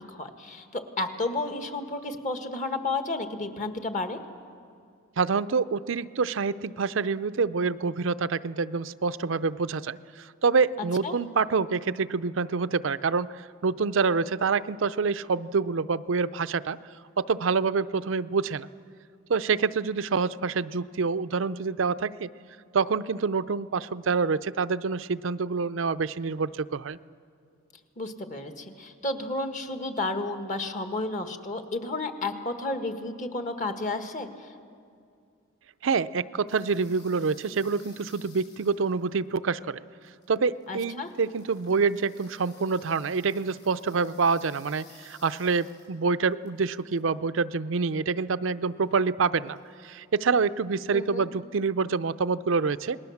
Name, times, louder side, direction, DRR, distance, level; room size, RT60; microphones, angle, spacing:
voice 1, 0.1-4.2 11.0-11.1 28.0-34.5 40.7-41.1 50.9-51.3, left 2 dB, 40° left, 7 dB, 1.6 m, -32 dB
voice 2, 5.2-16.8 17.2-18.7 19.3-22.3 22.7-27.0 35.8-39.8 40.3-53.0, right 5 dB, 70° right, 14 dB, 0.5 m, -27 dB
sound 1, 36.5-39.5 40.0-40.7 40.9-46.0 46.3-47.1 49.5-49.9, left 6 dB, 55° left, 7.2 m, -56 dB
28.0 x 20.0 x 7.2 m, 2.3 s
head